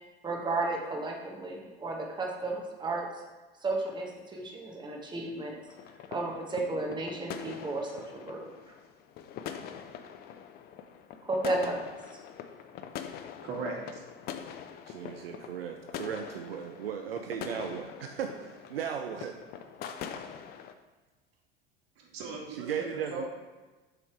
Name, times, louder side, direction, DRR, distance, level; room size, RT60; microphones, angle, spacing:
voice 1, 0.2-3.1 3.6-5.6 6.1-8.7 11.2-11.8, right 2 dB, 15° right, 0 dB, 1.1 m, -33 dB
sound 1, 5.7-20.7, left 8 dB, 30° left, 0.5 m, -43 dB
voice 2, 13.4-14.0 22.0-23.3, right 3 dB, 45° right, -1 dB, 1.7 m, -38 dB
voice 3, 14.9-19.4 22.5-23.2, right 8 dB, 75° right, 5 dB, 0.5 m, -36 dB
6.8 x 3.5 x 4.6 m, 1.2 s
figure-of-eight pair, 70°, 30 cm